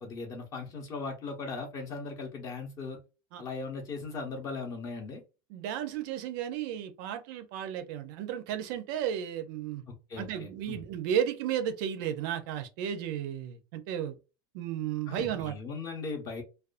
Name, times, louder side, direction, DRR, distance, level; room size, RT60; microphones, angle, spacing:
voice 1, 0.0-3.0 3.4-5.2 9.9-10.8 15.1-16.4, left 4 dB, 25° left, 3 dB, 0.7 m, -38 dB
voice 2, 5.5-9.8 10.2-14.2 14.5-15.5, right 9 dB, 55° right, 8 dB, 0.4 m, -33 dB
2.4 x 2.2 x 2.4 m, 0.30 s
supercardioid pair, 165°, 13 cm